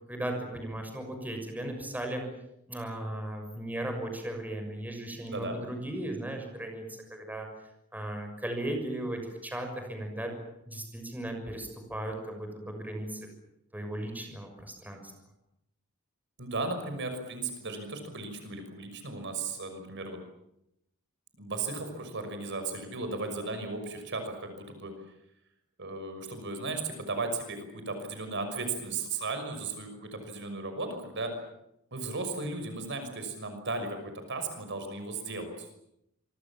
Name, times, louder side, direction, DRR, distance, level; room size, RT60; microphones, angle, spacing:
voice 1, 0.1-2.2 2.7-6.8 7.1-7.5 7.9-10.3 10.7-13.2 13.7-15.0, right 1 dB, 10° right, 4 dB, 6.4 m, -36 dB
voice 2, 5.3-5.6 16.4-20.2 21.4-24.9 25.8-31.3 31.9-35.7, right 3 dB, 55° right, 7 dB, 6.0 m, -36 dB
27.0 x 24.5 x 7.4 m, 0.80 s
head